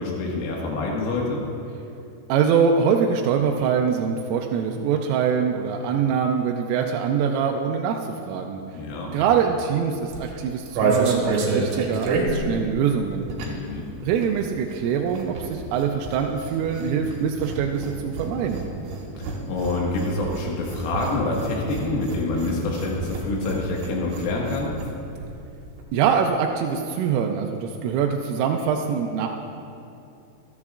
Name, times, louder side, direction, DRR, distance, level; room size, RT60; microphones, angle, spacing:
voice 1, 0.0-1.4 8.7-9.1 13.4-13.9 19.2-24.7, left 2 dB, 85° left, -3 dB, 4.2 m, -27 dB
voice 2, 2.3-8.6 9.1-13.3 14.0-18.6 25.9-29.3, right 7 dB, 90° right, 2 dB, 3.3 m, -24 dB
sound 1, 10.0-13.8 14.0-24.9 25.2-25.3 25.5-25.8, right 3 dB, 75° right, 3.7 m, -29 dB
27.0 x 11.0 x 2.4 m, 2.6 s
omnidirectional pair, 5.7 m